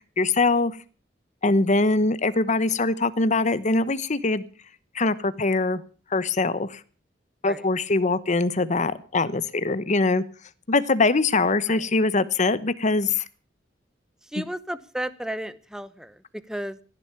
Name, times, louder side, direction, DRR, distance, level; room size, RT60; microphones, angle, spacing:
voice 1, 0.2-0.8 1.4-4.4 4.9-5.8 6.1-6.8 7.4-10.2 10.7-13.2 14.4-14.5, left 3 dB, 40° left, 15 dB, 1.0 m, -22 dB
voice 2, 14.3-16.8, right 1 dB, 5° right, 15 dB, 0.9 m, -33 dB
16.0 x 11.0 x 6.9 m, 0.39 s
head